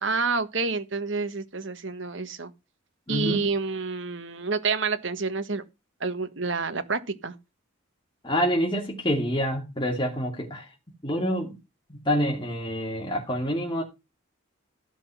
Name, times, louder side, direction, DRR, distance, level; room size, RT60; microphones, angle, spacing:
voice 1, 0.0-2.5 3.1-5.6 6.0-7.3, right 4 dB, 65° right, 1.4 m, -28 dB
voice 2, 3.1-3.4 8.2-10.7 11.0-11.6 11.9-13.8, equal, 25° left, 2.5 m, -27 dB
13.5 x 6.1 x 5.7 m
head